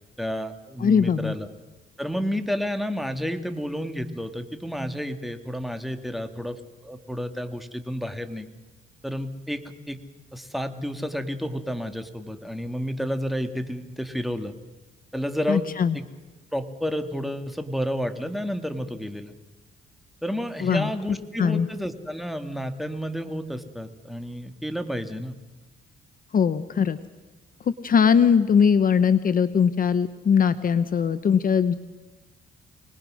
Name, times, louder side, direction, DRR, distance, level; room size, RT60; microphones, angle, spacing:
voice 1, 0.2-1.5 2.0-8.5 9.0-10.0 10.3-14.5 15.1-15.6 15.9-16.0 16.5-19.3 20.2-25.3, equal, ahead, 7 dB, 2.0 m, -30 dB
voice 2, 0.8-1.3 15.5-16.0 20.6-20.9 21.4-21.7 26.3-27.0 27.7-31.7, left 7 dB, 45° left, 13 dB, 0.9 m, -20 dB
24.5 x 20.0 x 6.4 m, 1.2 s
cardioid pair, 90°, 20 cm